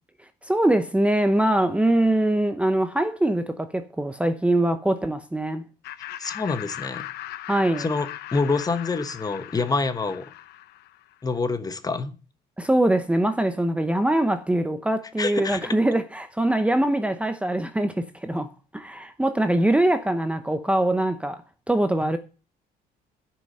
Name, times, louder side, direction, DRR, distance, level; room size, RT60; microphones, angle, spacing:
voice 1, 0.4-5.6 7.5-7.9 12.6-21.4 21.7-22.2, right 1 dB, 5° right, 0.8 m, -23 dB
Laughter, 5.8-11.1, left 13 dB, 75° left, 0.7 m, -38 dB
voice 2, 6.2-7.0 7.8-10.3 11.2-12.2 15.2-15.6, left 4 dB, 20° left, 1.2 m, -26 dB
9.8 x 6.1 x 7.8 m
cardioid pair, 110°, 17 cm